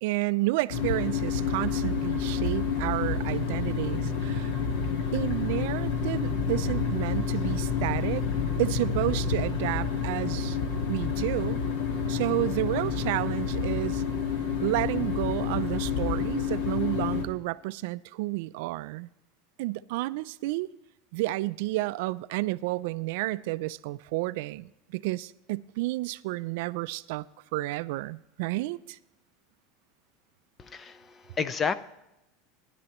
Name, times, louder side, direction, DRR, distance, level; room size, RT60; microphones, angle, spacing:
voice 1, 0.0-4.5 5.1-8.3 8.6-10.6 10.9-11.6 12.1-14.0 14.6-19.1 19.6-20.7 21.1-27.2 27.5-29.0, right 19 dB, 60° right, 0.3 m, -31 dB
sound 1, 0.7-17.2, left 6 dB, 65° left, 1.8 m, -29 dB
voice 2, 30.6-31.7, left 6 dB, 15° left, 0.4 m, -31 dB
16.0 x 10.5 x 3.0 m
supercardioid pair, 175°, 0 cm